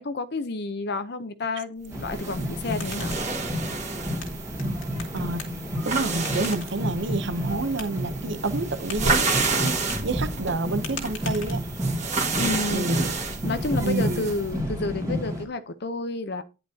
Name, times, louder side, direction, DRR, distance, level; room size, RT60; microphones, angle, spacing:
voice 1, 0.0-3.2 12.3-13.1 13.4-16.4, left 3 dB, 50° left, 0.7 m, -30 dB
sound 1, 1.9-15.4, equal, 15° right, 2.2 m, -31 dB
sound 2, 1.9-14.5, right 4 dB, 35° right, 1.7 m, -31 dB
sound 3, 2.4-12.0, left 5 dB, 80° left, 2.4 m, -44 dB
voice 2, 5.1-11.6 12.7-13.1 13.8-14.3, right 3 dB, 55° right, 0.7 m, -29 dB
10.5 x 7.6 x 2.8 m
head